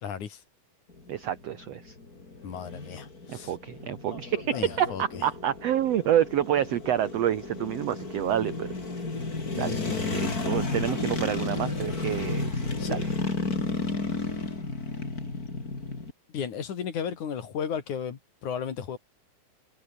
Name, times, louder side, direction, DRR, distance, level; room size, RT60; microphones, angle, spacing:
voice 1, 0.0-0.4 2.4-3.5 4.5-5.0 9.5-10.6 12.8-13.0 16.3-19.0, left 7 dB, 60° left, 3.7 m, -34 dB
sound 1, 0.9-16.1, left 3 dB, 25° left, 4.3 m, -33 dB
voice 2, 1.1-2.0 3.3-8.7 9.6-13.1, right 10 dB, 70° right, 1.5 m, -28 dB
open air
omnidirectional pair, 4.2 m